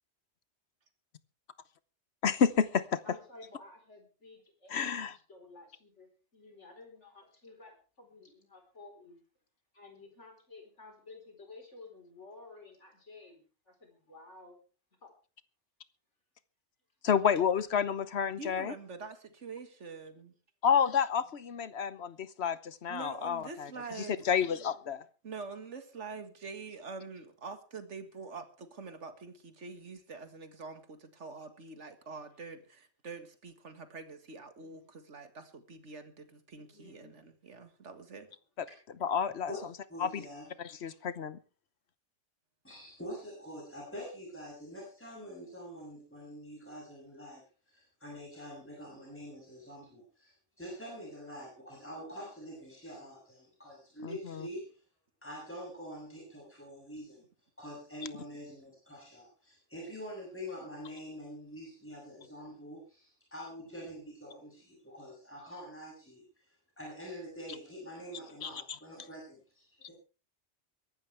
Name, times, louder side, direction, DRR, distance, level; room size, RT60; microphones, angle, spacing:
voice 1, 2.2-3.2 4.7-5.2 17.0-18.7 20.6-23.7 24.0-25.0 39.0-39.5 40.0-40.2 40.6-41.4 54.0-54.5 68.4-68.8, left 7 dB, 65° left, 1.2 m, -30 dB
voice 2, 3.0-6.1 6.3-9.2 9.7-13.4 13.7-14.6 15.0-15.1 34.6-34.8 36.5-37.1, left 3 dB, 85° left, 4.6 m, -53 dB
voice 3, 18.4-20.3 22.9-24.2 25.2-38.3, right 4 dB, 90° right, 2.1 m, -45 dB
voice 4, 39.9-40.4 42.6-47.4 47.7-54.6 55.2-57.2 57.6-69.9, equal, 10° left, 7.4 m, -45 dB
23.0 x 12.0 x 3.4 m
omnidirectional pair, 1.2 m